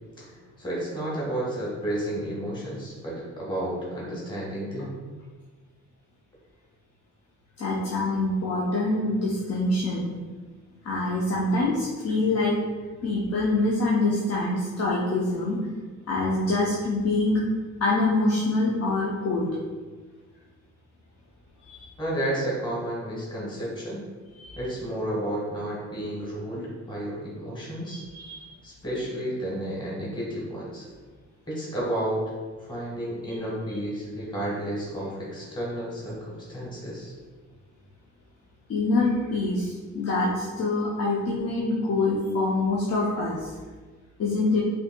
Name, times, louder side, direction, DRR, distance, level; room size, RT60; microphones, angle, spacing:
voice 1, 0.2-4.9 22.0-24.0 24.6-28.0 28.6-30.9 31.5-32.3 32.6-37.1, right 1 dB, 15° left, -6 dB, 1.4 m, -31 dB
voice 2, 7.6-10.1 10.8-12.6 13.0-15.6 16.1-17.4 17.8-19.5 21.7-21.9 24.4-24.6 27.9-28.4 38.7-43.5 44.2-44.6, left 2 dB, 55° left, -6 dB, 0.8 m, -25 dB
5.4 x 2.8 x 2.2 m, 1.4 s
cardioid pair, 90°, 30 cm